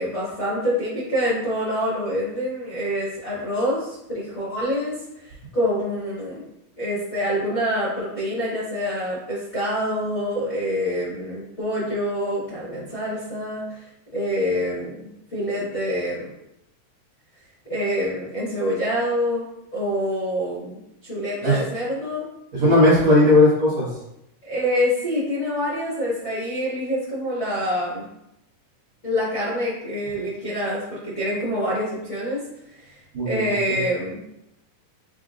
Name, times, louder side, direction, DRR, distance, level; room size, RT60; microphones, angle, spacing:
voice 1, 0.0-6.4 6.8-13.8 14.1-16.3 17.7-19.4 19.7-22.2 24.4-28.1 29.0-32.4 32.7-33.0 33.2-34.2, equal, 60° left, -10 dB, 0.7 m, -26 dB
voice 2, 22.5-23.8 33.1-33.8, left 1 dB, 55° right, -12 dB, 2.4 m, -17 dB
7.5 x 2.7 x 2.5 m, 0.84 s
omnidirectional pair, 3.9 m